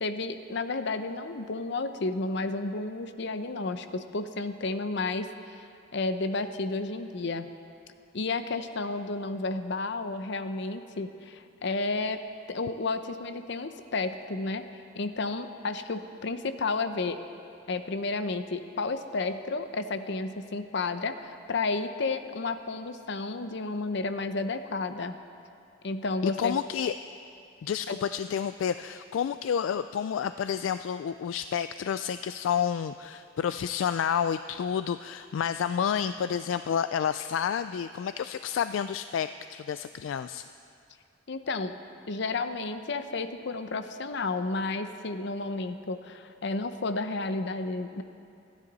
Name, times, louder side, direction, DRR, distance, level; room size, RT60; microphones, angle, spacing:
voice 1, 0.0-5.7 5.9-7.5 8.1-12.2 12.5-14.6 14.9-17.2 17.7-25.2 25.8-26.6 27.9-28.0 41.3-41.8 42.1-48.0, left 3 dB, 65° left, 10 dB, 0.7 m, -32 dB
voice 2, 26.2-26.9 27.6-40.5, left 8 dB, 80° left, 12 dB, 0.3 m, -30 dB
27.0 x 9.7 x 4.1 m, 2.5 s
head